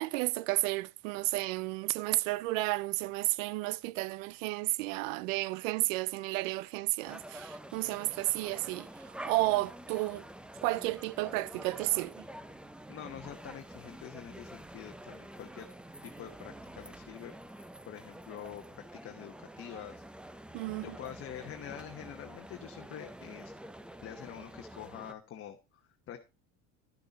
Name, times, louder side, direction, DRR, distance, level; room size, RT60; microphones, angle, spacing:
voice 1, 0.0-10.3 10.6-12.3 20.5-21.0, right 20 dB, 85° right, 0.5 m, -32 dB
sound 1, 7.1-25.1, right 1 dB, 5° right, 0.5 m, -48 dB
voice 2, 12.9-15.7 16.0-17.3 17.9-20.0 20.7-23.5 24.0-26.2, left 10 dB, 35° left, 1.0 m, -46 dB
11.5 x 6.7 x 3.9 m
supercardioid pair, 115°, 38 cm